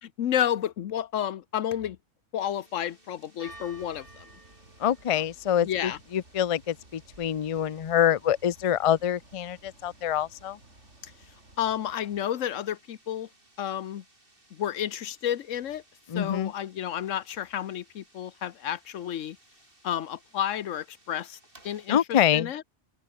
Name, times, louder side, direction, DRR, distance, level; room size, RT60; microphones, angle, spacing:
voice 1, 0.0-2.0 2.3-4.3 5.1-5.2 5.6-6.0 11.0-11.1 11.6-13.3 13.6-14.0 14.5-15.8 16.1-19.4 19.8-21.4 21.6-22.6, left 10 dB, 85° left, 1.2 m, -31 dB
sound 1, 2.4-22.0, right 1 dB, 45° right, 5.8 m, -57 dB
sound 2, 3.5-12.0, right 2 dB, 70° right, 5.9 m, -56 dB
voice 2, 4.8-10.6 16.1-16.5 21.9-22.5, left 10 dB, 50° left, 0.4 m, -26 dB
open air
omnidirectional pair, 1.3 m